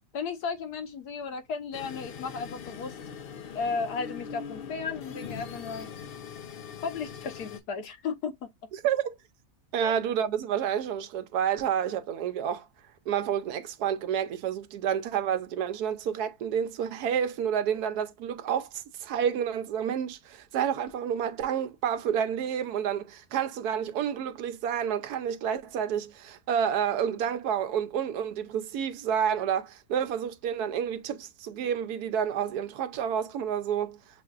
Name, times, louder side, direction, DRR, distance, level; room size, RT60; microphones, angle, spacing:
voice 1, 0.1-3.0 3.5-5.9 6.8-8.5 9.8-9.9, left 5 dB, 85° left, 1.5 m, -34 dB
sound 1, 1.7-7.6, left 7 dB, 65° left, 0.5 m, -41 dB
voice 2, 8.7-9.2 9.7-12.7 13.1-34.0, right 8 dB, 80° right, 1.2 m, -29 dB
7.1 x 2.6 x 2.4 m
omnidirectional pair, 1.6 m